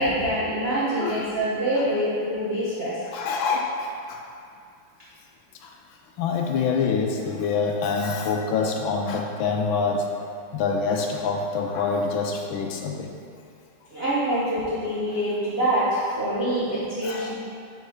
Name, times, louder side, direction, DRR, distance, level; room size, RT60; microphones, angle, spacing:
voice 1, 0.0-3.0 13.9-17.3, right 1 dB, 70° right, -8 dB, 0.5 m, -25 dB
voice 2, 3.0-4.2 5.6-5.7 6.2-10.2 10.5-13.1 17.0-17.3, left 5 dB, 75° left, 2 dB, 1.2 m, -26 dB
4.7 x 4.3 x 4.8 m, 2.3 s
omnidirectional pair, 2.4 m